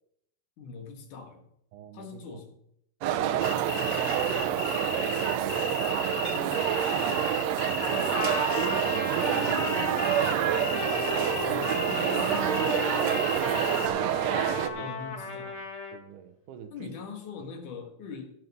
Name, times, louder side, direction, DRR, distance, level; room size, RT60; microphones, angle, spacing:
voice 1, 0.6-1.4 1.9-2.5 6.3-7.6 11.5-12.5 14.7-15.6 16.7-18.4, left 5 dB, 80° left, 4 dB, 3.2 m, -42 dB
voice 2, 1.7-2.4 3.3-4.9 8.2-10.0 10.2-10.4 11.6-12.3 13.0-13.8 14.6-14.9 15.9-16.9, right 9 dB, 90° right, 7 dB, 2.5 m, -40 dB
sound 1, 3.0-14.7, right 10 dB, 75° right, 1.7 m, -27 dB
sound 2, 3.4-13.9, left 5 dB, 55° left, 1.6 m, -36 dB
Trumpet, 7.8-16.0, left 3 dB, 35° left, 1.2 m, -35 dB
16.0 x 5.9 x 5.4 m, 0.74 s
omnidirectional pair, 3.6 m